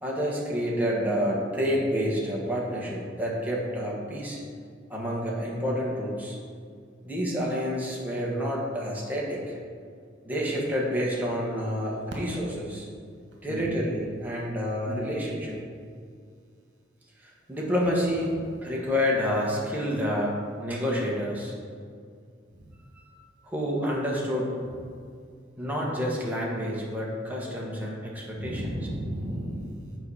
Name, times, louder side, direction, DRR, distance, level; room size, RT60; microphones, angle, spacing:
voice 1, 0.0-4.4 4.9-6.4 7.0-9.6 10.2-12.9 13.4-15.6 17.2-18.3 18.6-21.5 23.0-23.1 23.4-24.5 25.6-28.9, equal, 10° right, -4 dB, 1.4 m, -29 dB
voice 2, 13.5-13.8 14.8-15.2 22.5-22.7 28.3-30.0, equal, 65° right, -1 dB, 1.5 m, -34 dB
7.7 x 4.9 x 5.7 m, 2.2 s
head